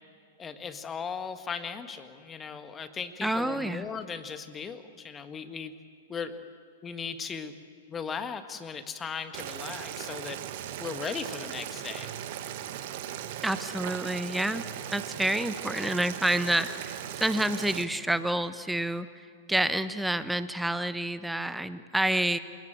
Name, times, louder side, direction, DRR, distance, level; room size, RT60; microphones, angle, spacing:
voice 1, 0.4-5.7 6.1-6.4 6.8-7.6 7.9-10.4 10.8-12.1, left 6 dB, 20° left, 9 dB, 1.6 m, -37 dB
voice 2, 3.2-3.9 13.4-14.6 14.9-22.4, right 1 dB, 5° right, 13 dB, 1.0 m, -28 dB
Boiling, 9.3-17.8, right 11 dB, 50° right, 1.7 m, -38 dB
28.5 x 18.5 x 9.1 m, 2.3 s
figure-of-eight pair, 105°, 0 cm